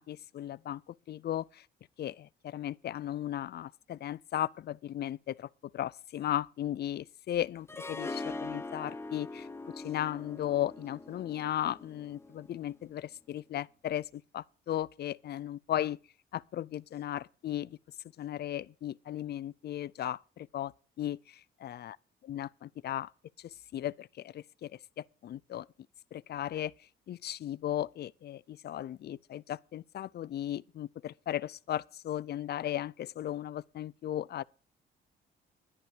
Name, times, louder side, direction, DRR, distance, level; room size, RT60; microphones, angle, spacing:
voice 1, 0.0-1.7 2.0-9.5 9.8-16.0 16.3-17.8 18.2-20.7 21.0-21.3 21.6-22.0 22.2-23.1 23.4-25.7 26.1-26.7 27.1-34.4, left 12 dB, 55° left, 0.5 m, -36 dB
Harp, 7.7-12.8, left 2 dB, 15° left, 0.7 m, -42 dB
11.0 x 10.5 x 4.8 m
cardioid pair, 90°, 20 cm